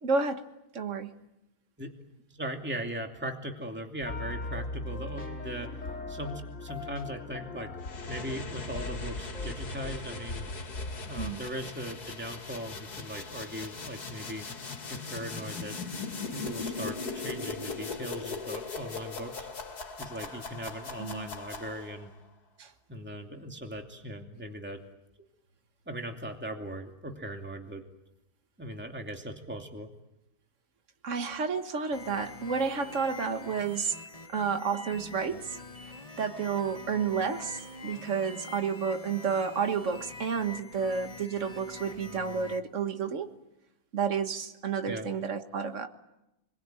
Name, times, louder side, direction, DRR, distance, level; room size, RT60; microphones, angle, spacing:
voice 1, 0.0-0.5 0.7-1.2 11.2-11.4 21.0-21.3 22.6-22.7 31.0-34.0 34.3-35.6 35.9-43.3 43.9-45.9, right 5 dB, 50° right, 7 dB, 1.9 m, -31 dB
voice 2, 2.3-5.7 6.1-7.7 8.1-10.5 11.1-14.5 14.9-19.5 20.0-22.1 22.9-24.8 25.9-27.8 28.6-29.9 44.9-45.1, right 1 dB, 5° right, 3 dB, 2.5 m, -39 dB
sound 1, 4.0-11.3, left 2 dB, 50° left, 2.5 m, -39 dB
sound 2, 7.8-22.1, left 4 dB, 80° left, 2.5 m, -39 dB
sound 3, 31.9-42.6, left 2 dB, 25° left, 1.7 m, -45 dB
29.0 x 22.0 x 9.1 m, 0.89 s
omnidirectional pair, 1.6 m